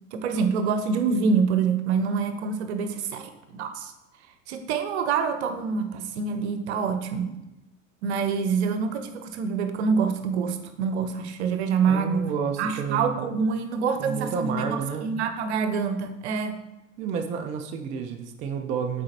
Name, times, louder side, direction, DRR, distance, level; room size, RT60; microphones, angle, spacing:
voice 1, 0.1-3.9 4.5-7.3 8.0-12.3 12.6-16.6, right 5 dB, 55° right, 9 dB, 0.8 m, -26 dB
voice 2, 11.9-13.2 14.0-15.1 17.0-19.0, right 6 dB, 20° right, 5 dB, 0.3 m, -30 dB
8.6 x 4.0 x 2.8 m, 0.96 s
figure-of-eight pair, 80°, 39 cm